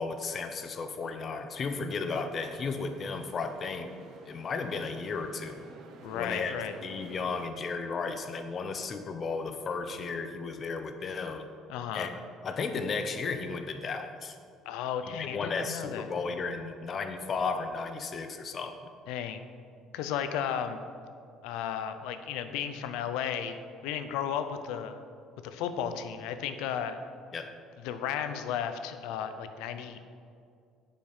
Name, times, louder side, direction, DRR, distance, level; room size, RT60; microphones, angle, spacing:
voice 1, 0.0-3.9 4.3-5.6 6.1-6.5 6.8-11.5 11.9-14.4 15.0-18.8 27.3-27.5, left 4 dB, 40° left, 8 dB, 0.8 m, -34 dB
sound 1, 2.3-7.5, right 4 dB, 60° right, 1.0 m, -52 dB
voice 2, 6.0-6.8 11.7-12.1 14.7-16.1 19.1-19.5 19.9-20.8 21.4-23.6 23.8-25.0 25.4-27.0 27.8-30.0, left 8 dB, 85° left, 9 dB, 0.6 m, -34 dB
9.2 x 5.4 x 5.5 m, 2.3 s
cardioid pair, 110°, 0 cm